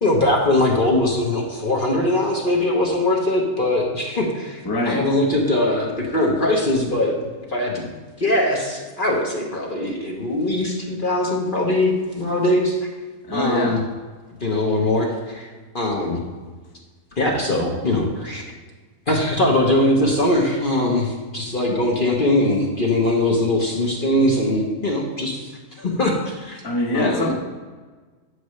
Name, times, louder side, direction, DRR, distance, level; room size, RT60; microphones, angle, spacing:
voice 1, 0.0-7.2 7.5-7.9 8.2-12.7 13.3-13.8 14.4-15.5 15.7-16.2 17.2-18.4 19.1-25.5 25.8-26.6 26.9-27.3, left 1 dB, 40° left, -1 dB, 1.1 m, -21 dB
voice 2, 4.6-5.0 13.2-13.8 26.6-27.3, left 1 dB, 20° left, -1 dB, 0.9 m, -23 dB
9.3 x 8.0 x 3.2 m, 1.4 s
omnidirectional pair, 1.6 m